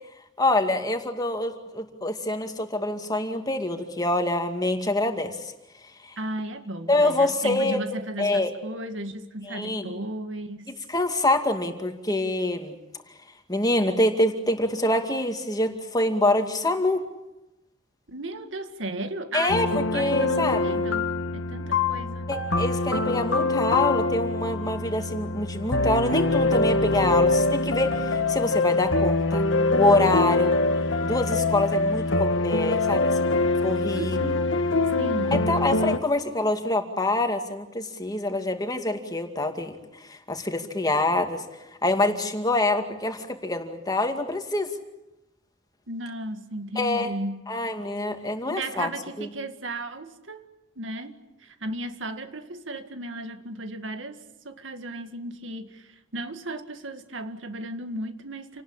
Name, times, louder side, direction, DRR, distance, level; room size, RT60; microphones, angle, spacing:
voice 1, 0.4-5.4 6.9-7.8 8.2-8.5 9.4-9.9 10.9-12.7 13.5-17.0 19.3-19.7 19.9-20.8 22.3-29.5 29.7-30.5 31.0-33.3 33.6-34.2 35.3-39.7 40.1-41.4 41.8-44.7 46.8-47.1 47.5-48.9 49.2-49.3, left 2 dB, 20° left, 5 dB, 2.3 m, -25 dB
voice 2, 6.2-10.7 18.1-22.3 33.9-34.5 35.0-35.5 45.9-47.5 48.5-50.5 50.8-58.6, right 1 dB, 85° right, 8 dB, 2.0 m, -35 dB
sound 1, 19.5-36.0, left 2 dB, 90° left, 1.6 m, -24 dB
28.5 x 18.5 x 8.8 m, 0.96 s
head